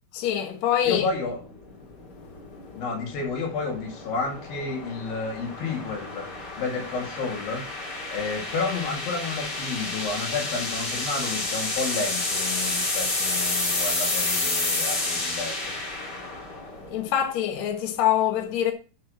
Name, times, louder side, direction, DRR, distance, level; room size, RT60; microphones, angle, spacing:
voice 1, 0.1-1.1 16.9-18.7, left 10 dB, 60° left, 2.5 m, -24 dB
voice 2, 0.8-1.4 2.7-6.3 6.6-7.7 8.1-15.6, left 4 dB, 85° left, 4.0 m, -31 dB
sound 1, 0.8-17.1, left 2 dB, 35° left, 2.5 m, -30 dB
11.0 x 5.6 x 4.2 m
omnidirectional pair, 4.0 m